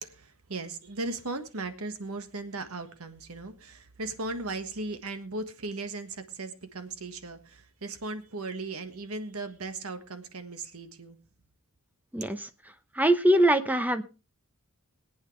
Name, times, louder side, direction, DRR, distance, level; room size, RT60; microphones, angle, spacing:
voice 1, 0.0-11.2, right 3 dB, 85° right, 9 dB, 1.5 m, -37 dB
voice 2, 12.1-12.5 12.9-14.0, right 1 dB, 10° right, 10 dB, 0.8 m, -22 dB
22.5 x 8.7 x 3.2 m, 0.31 s
head